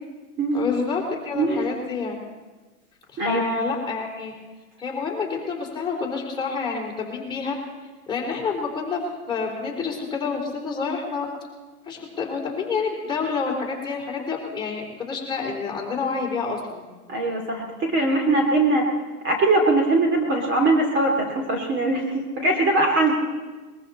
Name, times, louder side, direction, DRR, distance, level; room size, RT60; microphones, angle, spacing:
voice 1, 0.5-2.2 3.1-4.3 4.8-7.5 8.1-11.3 11.9-16.8, left 4 dB, 10° left, -3 dB, 3.7 m, -28 dB
voice 2, 1.3-1.7 3.2-3.5 17.1-18.9 19.2-23.2, right 2 dB, 25° right, 1 dB, 2.5 m, -21 dB
22.0 x 14.5 x 4.2 m, 1.3 s
hypercardioid pair, 140°, 45 cm